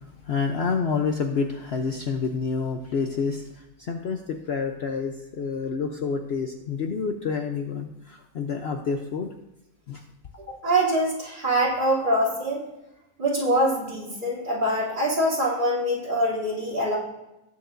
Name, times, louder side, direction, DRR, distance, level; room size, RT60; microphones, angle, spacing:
voice 1, 0.3-9.3 9.9-10.0, left 5 dB, 55° left, 4 dB, 0.9 m, -28 dB
voice 2, 10.6-12.6 13.2-17.0, right 1 dB, 35° right, -6 dB, 3.0 m, -24 dB
19.0 x 6.9 x 2.6 m, 0.94 s
omnidirectional pair, 1.5 m